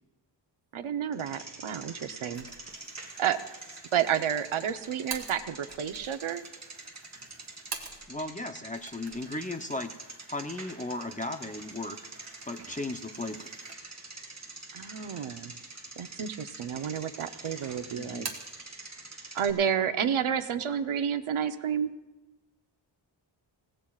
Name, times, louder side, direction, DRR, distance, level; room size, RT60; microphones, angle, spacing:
voice 1, 0.7-2.5 3.2-3.4 3.9-6.4 14.7-15.5 16.0-18.3 19.3-21.9, right 8 dB, 90° right, 9 dB, 0.9 m, -30 dB
Bicycle, 1.1-19.5, right 3 dB, 35° right, 2.3 m, -46 dB
sound 1, 2.3-8.3 8.7-14.1 14.5-14.6 15.5-16.1 16.5-17.2 17.5-18.6, right 4 dB, 50° right, 1.9 m, -47 dB
voice 2, 8.1-9.9 10.3-12.0 12.5-13.4 17.9-18.3, left 2 dB, 15° left, 6 dB, 0.6 m, -36 dB
29.0 x 17.0 x 2.4 m, 1.1 s
wide cardioid pair, 180°, 47 cm